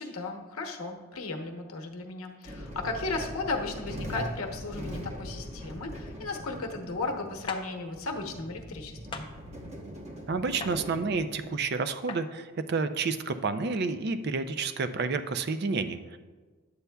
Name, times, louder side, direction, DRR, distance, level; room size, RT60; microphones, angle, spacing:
voice 1, 0.0-9.3, left 3 dB, 85° left, 3 dB, 0.9 m, -35 dB
sound 1, 2.4-11.5, equal, 30° right, 1.0 m, -41 dB
sound 2, 7.5-7.6 9.1-9.3 10.6-10.8 12.1-12.2, left 4 dB, 25° left, 0.5 m, -37 dB
voice 2, 10.3-16.2, right 4 dB, 50° right, 10 dB, 0.4 m, -30 dB
11.0 x 8.1 x 2.3 m, 1.4 s
head